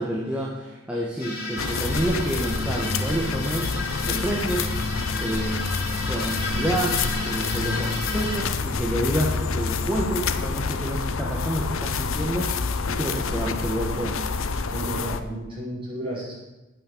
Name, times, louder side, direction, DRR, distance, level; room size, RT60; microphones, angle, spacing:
voice 1, 0.0-3.7 4.1-4.7 5.2-5.6 6.0-7.0 7.2-14.2, right 1 dB, 5° right, -5 dB, 1.6 m, -29 dB
sound 1, 1.2-8.4, left 2 dB, 45° left, 3.6 m, -32 dB
sound 2, 1.6-15.2, left 4 dB, 85° left, 0.8 m, -28 dB
voice 2, 14.7-16.4, right 1 dB, 25° right, -7 dB, 5.3 m, -32 dB
9.3 x 8.8 x 8.8 m, 1.1 s
head